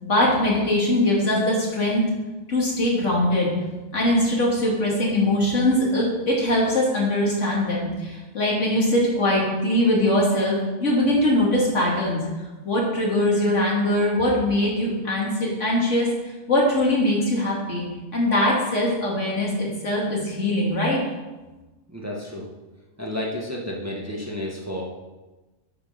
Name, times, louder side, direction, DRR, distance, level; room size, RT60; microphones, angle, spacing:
voice 1, 0.0-2.1 2.5-3.5 3.9-12.2 12.6-17.8 18.1-21.0, left 1 dB, 85° left, -4 dB, 2.9 m, -22 dB
voice 2, 21.9-22.5 23.0-24.8, left 1 dB, 15° right, -3 dB, 1.6 m, -31 dB
8.7 x 6.6 x 6.7 m, 1.2 s
omnidirectional pair, 1.2 m